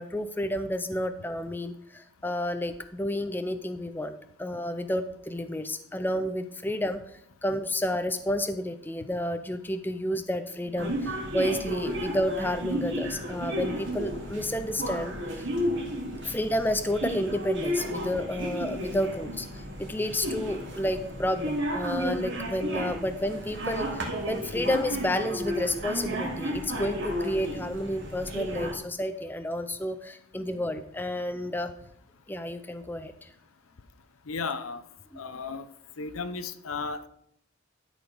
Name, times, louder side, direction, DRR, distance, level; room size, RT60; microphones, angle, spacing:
voice 1, 0.0-7.0 7.4-15.5 16.2-31.7 32.3-33.3 35.1-35.2, left 1 dB, 10° left, 9 dB, 0.5 m, -31 dB
sound 1, 10.8-28.7, equal, 60° right, 2.5 m, -33 dB
voice 2, 34.3-34.8 35.2-35.7 36.0-37.1, left 4 dB, 85° left, 12 dB, 0.7 m, -34 dB
12.5 x 5.0 x 5.3 m, 0.71 s
head